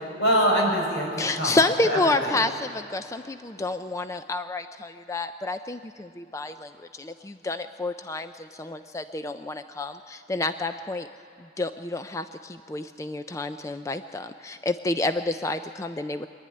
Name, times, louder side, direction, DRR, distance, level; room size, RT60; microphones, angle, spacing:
voice 1, 0.2-2.4, equal, 75° left, -2 dB, 6.0 m, -24 dB
voice 2, 1.2-11.1 11.6-16.3, left 2 dB, 15° left, 9 dB, 0.4 m, -29 dB
23.5 x 11.5 x 9.5 m, 2.9 s
head